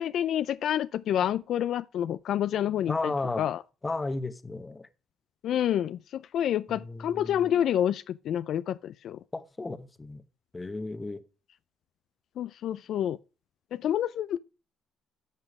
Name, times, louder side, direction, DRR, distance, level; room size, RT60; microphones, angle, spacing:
voice 1, 0.0-3.1 3.4-3.6 5.4-9.2 12.4-13.2 13.7-14.4, left 10 dB, 65° left, 0.4 m, -28 dB
voice 2, 2.9-3.5 3.8-4.9 6.7-7.6 9.3-10.2 10.5-11.2, left 3 dB, 20° left, 1.0 m, -34 dB
11.0 x 6.1 x 4.8 m
cardioid pair, 105°, 0 cm